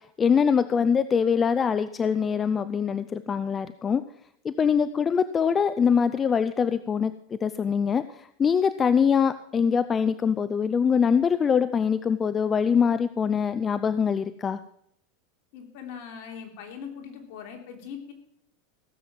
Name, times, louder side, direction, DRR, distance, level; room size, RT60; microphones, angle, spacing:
voice 1, 0.2-4.0 4.4-14.6, left 6 dB, 25° left, 14 dB, 0.5 m, -23 dB
voice 2, 15.5-18.1, left 7 dB, 60° left, 3 dB, 3.4 m, -40 dB
16.5 x 7.6 x 7.4 m, 0.74 s
supercardioid pair, 120°, 0 cm